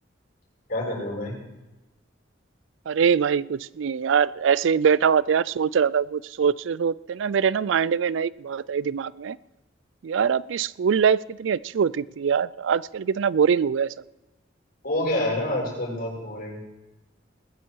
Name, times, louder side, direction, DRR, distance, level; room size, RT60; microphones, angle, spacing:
voice 1, 0.7-1.4 14.8-16.6, left 1 dB, 55° left, 6.4 m, -27 dB
voice 2, 2.9-9.4 10.0-13.9, right 7 dB, 90° right, 0.4 m, -23 dB
20.5 x 10.0 x 4.7 m
head